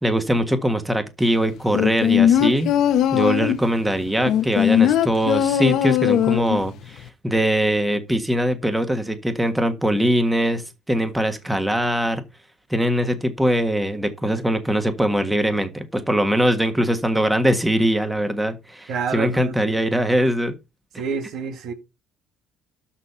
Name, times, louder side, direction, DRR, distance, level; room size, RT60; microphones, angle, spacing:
voice 1, 0.0-2.7 3.1-10.6 10.9-12.2 12.7-20.5, equal, 5° right, 1.6 m, -22 dB
sound 1, 1.7-3.7 4.2-6.7 7.0-7.1, left 10 dB, 70° left, 1.0 m, -19 dB
voice 2, 18.9-19.8 21.0-21.7, right 5 dB, 65° right, 1.9 m, -28 dB
12.5 x 4.2 x 5.6 m
cardioid pair, 100°, 0 cm